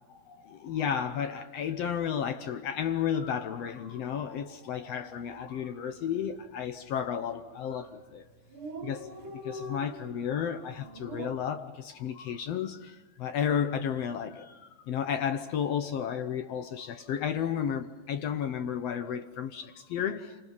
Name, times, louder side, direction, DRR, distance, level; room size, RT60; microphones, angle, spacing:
voice 1, 0.3-8.2 8.8-14.6 14.9-20.3, left 8 dB, 75° left, 1.5 m, -32 dB
Dog, 5.1-5.3 5.6-5.7 5.9-6.6 7.3-7.5 7.8-7.9 8.1-8.2 8.3-11.3, right 1 dB, 65° right, 4.6 m, -43 dB
28.0 x 27.0 x 5.5 m
omnidirectional pair, 4.0 m